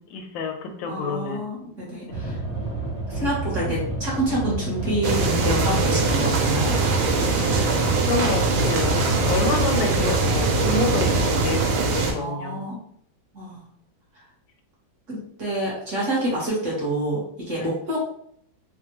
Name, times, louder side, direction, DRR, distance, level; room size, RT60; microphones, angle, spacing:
voice 1, 0.0-1.4 7.6-12.7 17.6-17.7, left 3 dB, 75° left, 4 dB, 1.2 m, -28 dB
voice 2, 0.9-2.4 3.1-6.8 12.1-12.8 13.3-13.6 15.1-18.0, right 1 dB, 50° right, -5 dB, 1.0 m, -27 dB
sound 1, 2.1-11.4, right 2 dB, 20° left, 0.7 m, -30 dB
sound 2, 5.0-12.1, right 3 dB, 80° right, 1.4 m, -22 dB
3.4 x 2.1 x 2.9 m, 0.65 s
omnidirectional pair, 2.2 m